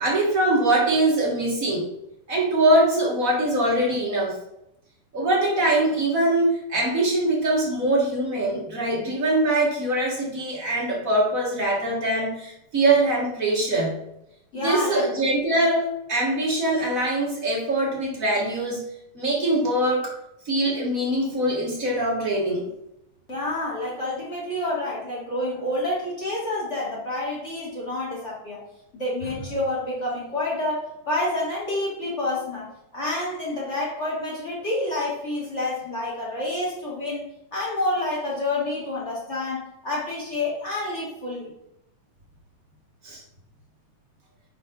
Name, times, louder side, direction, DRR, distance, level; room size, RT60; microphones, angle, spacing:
voice 1, 0.0-1.9 2.3-4.4 5.1-14.0 14.5-18.8 19.1-20.1 20.4-22.7 43.0-43.2, right 1 dB, 45° right, -3 dB, 1.0 m, -23 dB
voice 2, 14.5-15.1 23.3-28.6 28.9-32.7 32.9-41.5, left 2 dB, 20° left, -5 dB, 3.1 m, -28 dB
9.1 x 5.9 x 3.8 m, 0.82 s
omnidirectional pair, 4.0 m